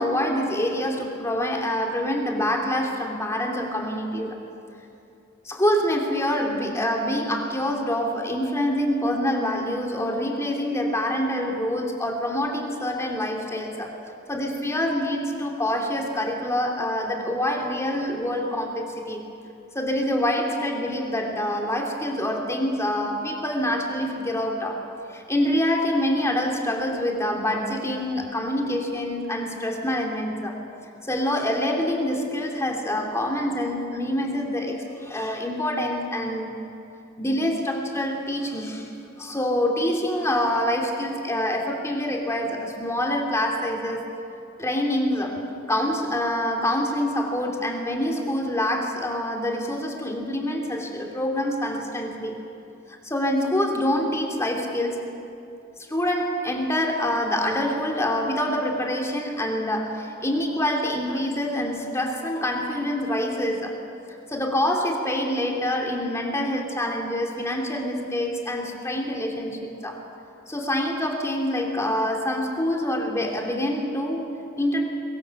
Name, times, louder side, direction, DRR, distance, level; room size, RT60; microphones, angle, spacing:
voice 1, 0.0-4.4 5.4-13.9 14.3-19.2 19.7-24.8 25.1-30.6 31.0-36.6 37.2-38.9 39.2-44.1 44.6-45.4 45.7-52.4 52.9-55.1 55.9-63.8 64.3-70.0 70.5-74.8, left 1 dB, 15° left, 0 dB, 2.9 m, -26 dB
23.0 x 22.5 x 7.1 m, 2.7 s
head